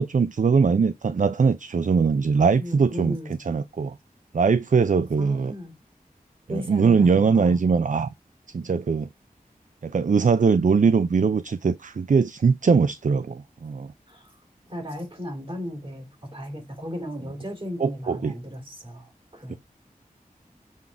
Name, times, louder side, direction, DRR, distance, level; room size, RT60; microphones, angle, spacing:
voice 1, 0.0-3.2 3.5-4.0 4.3-5.5 6.5-8.1 8.5-9.1 9.8-13.9 17.8-18.4 19.5-19.6, right 5 dB, 60° right, 0.4 m, -21 dB
voice 2, 2.6-3.4 5.2-5.7 6.5-7.6 14.1-14.3 14.6-19.6, left 1 dB, 35° right, 3.3 m, -35 dB
7.2 x 4.0 x 4.7 m
wide cardioid pair, 60°, 15 cm